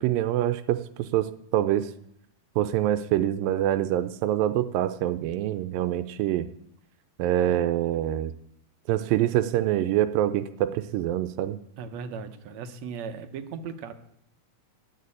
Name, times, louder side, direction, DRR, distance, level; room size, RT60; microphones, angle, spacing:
voice 1, 0.0-1.9 2.6-6.5 7.2-8.3 8.9-11.6, right 12 dB, 85° right, 10 dB, 2.3 m, -25 dB
voice 2, 11.8-13.9, right 6 dB, 70° right, 9 dB, 1.8 m, -37 dB
11.0 x 6.7 x 9.5 m, 0.76 s
omnidirectional pair, 3.9 m